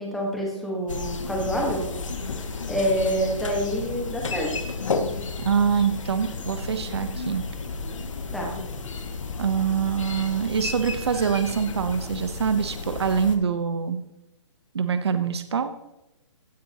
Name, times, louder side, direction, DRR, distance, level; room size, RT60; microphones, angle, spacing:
voice 1, 0.0-1.8 2.7-4.5 8.3-8.5, equal, ahead, -2 dB, 1.5 m, -27 dB
sound 1, 0.9-13.4, left 4 dB, 80° left, 2.2 m, -32 dB
voice 2, 5.4-7.4 9.4-14.0 14.7-15.7, right 7 dB, 55° right, 9 dB, 1.0 m, -24 dB
16.5 x 9.5 x 3.0 m, 0.92 s
hypercardioid pair, 180°, 16 cm